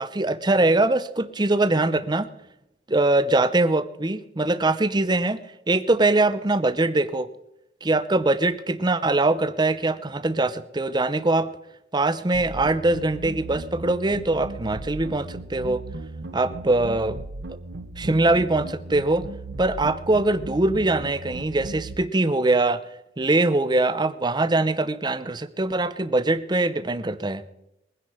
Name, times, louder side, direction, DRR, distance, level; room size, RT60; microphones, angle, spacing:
voice 1, 0.0-2.3 2.9-5.4 5.7-7.3 7.8-11.5 11.9-15.8 16.3-17.2 18.0-19.3 19.6-22.8 23.2-27.4, right 2 dB, 25° right, 14 dB, 0.7 m, -22 dB
sound 1, 12.3-21.9, right 2 dB, 85° right, 1.0 m, -37 dB
21.5 x 10.0 x 4.9 m, 0.87 s
head